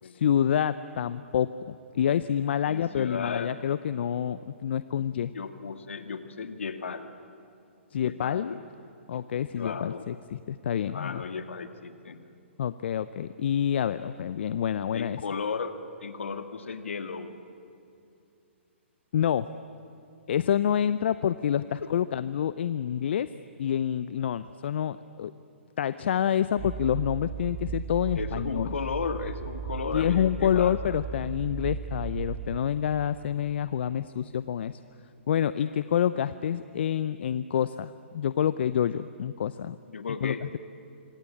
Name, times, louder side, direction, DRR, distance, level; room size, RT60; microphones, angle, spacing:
voice 1, 0.0-5.3 7.9-8.5 9.1-11.2 12.6-15.2 19.1-19.5 20.3-23.3 23.6-25.3 25.8-28.7 29.9-34.8 35.3-39.8 40.2-40.3, left 9 dB, 60° left, 14 dB, 0.7 m, -27 dB
voice 2, 2.7-3.5 5.3-7.1 8.0-8.6 9.6-10.0 10.9-12.3 14.9-17.4 21.8-21.9 28.1-31.0 39.9-40.6, left 5 dB, 75° left, 9 dB, 2.0 m, -35 dB
sound 1, 26.6-32.6, right 6 dB, 30° right, 2.1 m, -36 dB
26.0 x 25.5 x 8.6 m, 2.7 s
hypercardioid pair, 130°, 7 cm